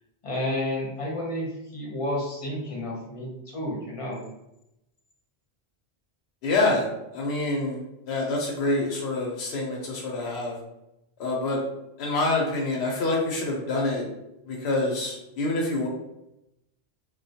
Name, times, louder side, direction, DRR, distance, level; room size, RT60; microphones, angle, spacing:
voice 1, 0.2-4.2, left 1 dB, 40° left, -3 dB, 0.6 m, -31 dB
voice 2, 6.4-6.9 7.1-7.8 8.1-10.5 11.2-11.6 12.0-14.1 14.5-15.9, left 2 dB, 90° left, -2 dB, 0.8 m, -26 dB
2.2 x 2.1 x 2.7 m, 0.87 s
omnidirectional pair, 1.0 m